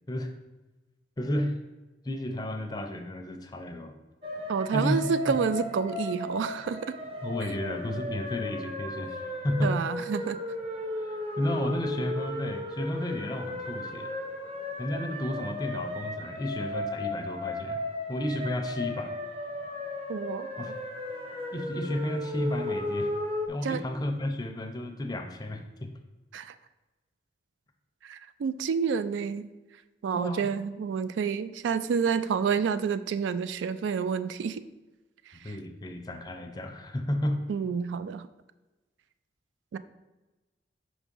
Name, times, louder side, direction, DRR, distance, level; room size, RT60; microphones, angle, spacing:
voice 1, 1.2-1.5 2.0-4.0 4.7-5.4 7.2-9.8 11.0-11.1 11.4-14.1 14.8-17.8 18.1-19.2 20.6-20.7 21.5-23.1 23.5-25.9 30.1-30.5 35.4-37.6, left 1 dB, 20° left, 5 dB, 0.5 m, -32 dB
sound 1, 4.2-23.5, left 1 dB, 30° right, 0.8 m, -35 dB
voice 2, 4.5-7.0 9.6-10.4 20.1-20.7 23.6-23.8 26.3-26.5 28.0-29.5 30.0-34.6 35.4-35.5 37.5-38.3 39.7-39.8, right 6 dB, 90° right, 13 dB, 0.3 m, -29 dB
5.0 x 3.6 x 5.2 m, 1.1 s
head